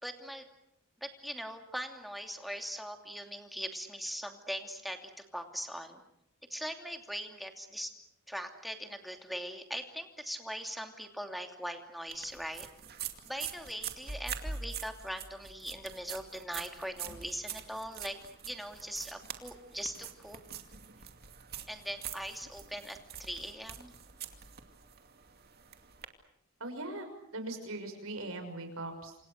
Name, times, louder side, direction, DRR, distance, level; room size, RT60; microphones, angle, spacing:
voice 1, 0.0-0.5 1.0-6.0 6.5-7.9 8.3-12.7 13.2-18.2 18.5-20.4 21.7-23.9, equal, ahead, 4 dB, 2.7 m, -41 dB
sound 1, 12.1-26.0, right 7 dB, 45° right, 2.5 m, -44 dB
voice 2, 26.6-29.2, right 2 dB, 70° right, 6 dB, 6.1 m, -40 dB
28.5 x 27.0 x 6.6 m, 0.77 s
head